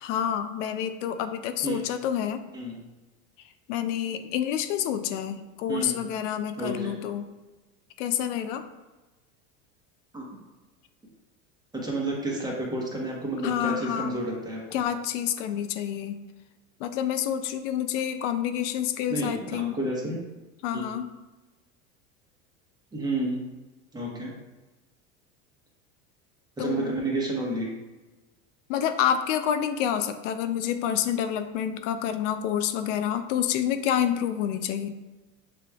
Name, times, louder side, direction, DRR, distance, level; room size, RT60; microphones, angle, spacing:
voice 1, 0.0-2.4 3.7-7.2 8.0-8.6 13.4-14.2 14.7-16.2 16.8-19.8 20.6-21.1 26.6-27.0 28.7-34.9, left 9 dB, 75° left, 9 dB, 0.5 m, -28 dB
voice 2, 5.7-6.0 6.6-6.9 10.1-10.3 11.7-14.8 19.1-20.2 20.7-20.9 22.9-23.5 23.9-24.3 26.6-27.7, right 2 dB, 10° right, -2 dB, 1.1 m, -30 dB
6.8 x 3.1 x 2.3 m, 1.2 s
supercardioid pair, 115°, 37 cm